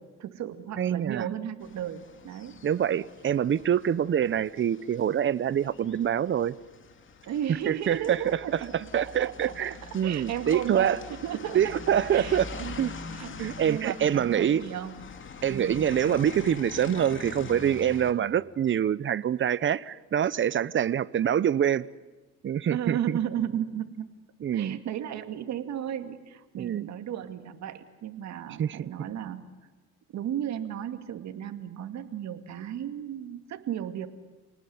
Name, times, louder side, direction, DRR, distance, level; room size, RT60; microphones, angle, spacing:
voice 1, 0.0-2.6 7.3-9.7 10.0-11.7 12.1-12.8 13.1-15.0 15.5-15.8 22.7-24.1 24.5-29.5 30.1-34.1, right 10 dB, 65° right, 7 dB, 2.3 m, -34 dB
voice 2, 0.8-1.3 2.6-6.5 7.6-11.0 11.5-12.5 12.8-12.9 13.4-14.6 15.4-21.9 22.4-23.2 24.4-24.8 26.6-26.9 28.6-29.1, right 9 dB, 40° right, 18 dB, 0.9 m, -26 dB
sound 1, 1.6-18.1, left 4 dB, 40° left, 2.5 m, -44 dB
28.0 x 19.0 x 9.6 m, 1.2 s
cardioid pair, 105°, 30 cm